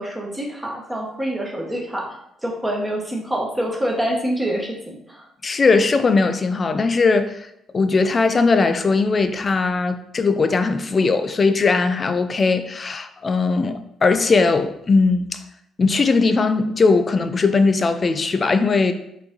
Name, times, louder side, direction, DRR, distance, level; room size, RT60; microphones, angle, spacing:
voice 1, 0.0-5.3, right 1 dB, 15° right, -1 dB, 1.0 m, -26 dB
voice 2, 5.4-7.5 7.7-15.4 15.8-18.9, left 4 dB, 40° left, 9 dB, 0.4 m, -19 dB
4.4 x 2.7 x 2.8 m, 0.78 s
hypercardioid pair, 45°, 0 cm